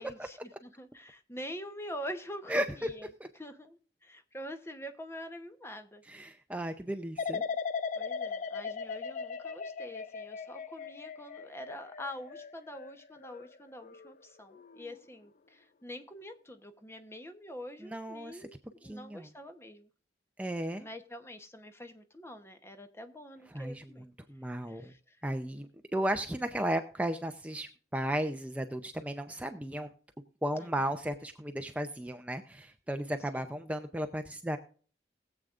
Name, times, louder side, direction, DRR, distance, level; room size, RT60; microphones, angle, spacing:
voice 1, 0.0-3.1 3.3-6.0 8.0-19.9 20.8-24.1 24.7-25.2 30.6-30.7 33.3-33.4, equal, 15° left, 8 dB, 0.9 m, -45 dB
voice 2, 2.5-2.9 6.1-7.4 17.8-18.5 18.8-19.3 20.4-20.9 23.5-24.9 25.2-29.9 30.4-34.6, right 1 dB, 10° right, 7 dB, 0.5 m, -35 dB
sound 1, 7.2-14.1 14.5-15.0, left 5 dB, 45° left, 0.4 m, -38 dB
20.5 x 7.9 x 2.5 m, 0.42 s
head